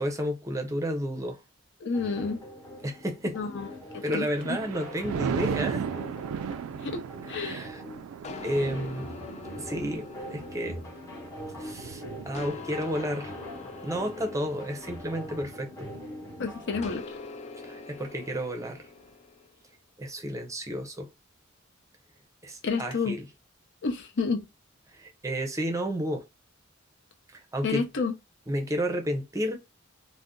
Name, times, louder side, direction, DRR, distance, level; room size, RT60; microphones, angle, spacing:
voice 1, 0.0-1.4 2.8-3.4 4.0-5.9 7.3-7.8 8.4-9.1 9.6-10.8 11.6-13.3 13.8-15.9 17.6-18.8 20.0-21.1 22.4-23.3 24.9-26.3 27.3-27.8 28.5-29.6, equal, 15° right, 0.6 m, -31 dB
voice 2, 1.8-2.4 3.3-3.7 3.9-4.3 6.8-7.0 7.3-7.7 16.4-17.2 22.6-23.2 23.8-24.4 27.6-28.1, left 4 dB, 60° left, 0.7 m, -30 dB
sound 1, 1.9-16.9, equal, 15° left, 0.8 m, -43 dB
Thunder, 3.9-15.4 15.9-16.2, right 7 dB, 85° right, 0.3 m, -37 dB
sound 2, 8.2-11.8 12.3-16.1 16.8-19.5, left 5 dB, 35° left, 0.3 m, -45 dB
2.5 x 2.1 x 3.6 m
head